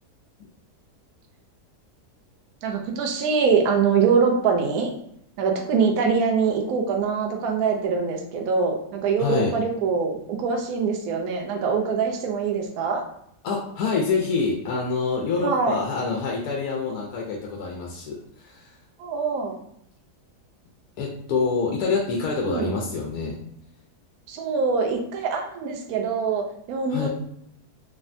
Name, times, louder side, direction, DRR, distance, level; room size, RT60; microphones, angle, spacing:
voice 1, 2.6-4.9 5.4-13.0 15.4-15.8 19.0-19.6 22.4-22.7 24.3-27.1, right 5 dB, 70° right, 2 dB, 1.0 m, -24 dB
voice 2, 9.2-9.5 13.4-18.8 21.0-23.4 26.9-27.1, left 4 dB, 70° left, -1 dB, 1.0 m, -26 dB
3.2 x 2.1 x 2.5 m, 0.72 s
omnidirectional pair, 1.8 m